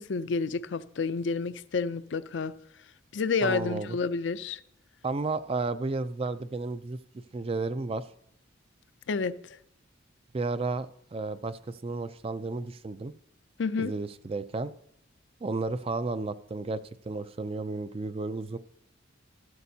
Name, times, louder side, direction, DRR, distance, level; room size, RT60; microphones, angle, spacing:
voice 1, 0.0-2.5 3.1-4.6 9.1-9.3 13.6-13.9, left 4 dB, 60° left, 0.5 m, -29 dB
voice 2, 3.4-4.0 5.0-7.0 7.3-8.1 10.3-13.1 13.8-14.7 15.4-18.6, right 3 dB, 30° right, 0.3 m, -32 dB
13.5 x 12.5 x 2.8 m
head